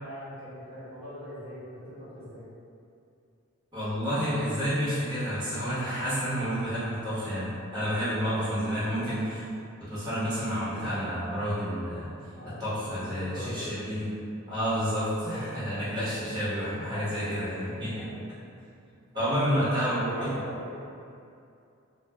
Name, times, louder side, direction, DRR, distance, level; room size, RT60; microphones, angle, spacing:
voice 1, 0.0-2.4 7.5-7.6 12.3-13.8 15.2-15.8 16.8-17.2 17.9-18.6 19.1-20.8, equal, 45° right, -13 dB, 1.0 m, -42 dB
voice 2, 3.7-9.4 9.8-12.1 12.4-14.1 14.5-18.1 19.1-20.4, equal, 20° right, -14 dB, 0.9 m, -30 dB
2.3 x 2.1 x 3.3 m, 2.6 s
head